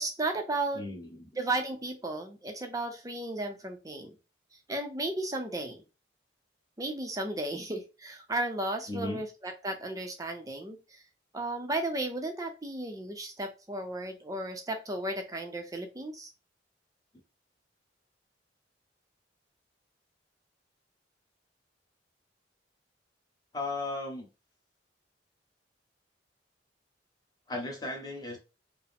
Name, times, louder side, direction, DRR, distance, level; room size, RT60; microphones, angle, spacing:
voice 1, 0.0-0.8 1.4-4.1 4.7-5.8 6.8-11.0 11.3-16.3, right 2 dB, 20° right, 0.5 m, -34 dB
voice 2, 0.7-1.3 8.9-9.2 23.5-24.3 27.5-28.4, left 2 dB, 20° left, 1.0 m, -36 dB
4.5 x 2.0 x 3.5 m
head